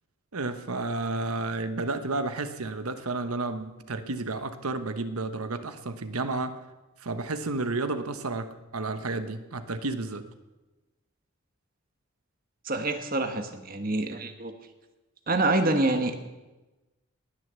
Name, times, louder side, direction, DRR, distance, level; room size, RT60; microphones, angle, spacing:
voice 1, 0.3-6.6 7.0-10.3, right 3 dB, 85° right, 10 dB, 1.1 m, -31 dB
voice 2, 12.6-14.5 15.3-16.2, right 2 dB, 40° right, 7 dB, 1.3 m, -26 dB
20.0 x 6.6 x 8.2 m, 1.1 s
head